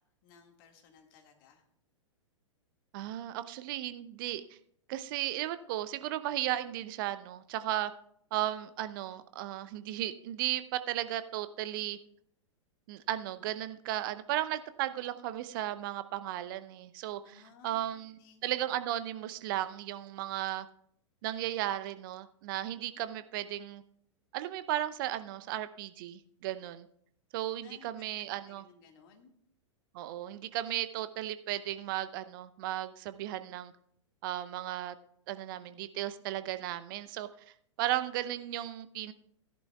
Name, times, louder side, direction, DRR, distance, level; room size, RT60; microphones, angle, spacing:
voice 1, 0.2-1.6 17.2-18.4 27.6-28.0 28.4-29.3, left 6 dB, 45° left, 3 dB, 1.9 m, -58 dB
voice 2, 2.9-4.6 4.9-7.9 8.3-12.0 12.9-20.7 21.2-23.8 24.3-26.9 27.3-28.6 29.9-33.7 34.2-34.9 35.3-37.3 37.8-39.1, right 13 dB, 45° right, 12 dB, 0.7 m, -35 dB
16.5 x 11.0 x 2.3 m, 0.66 s
figure-of-eight pair, 105°, 16 cm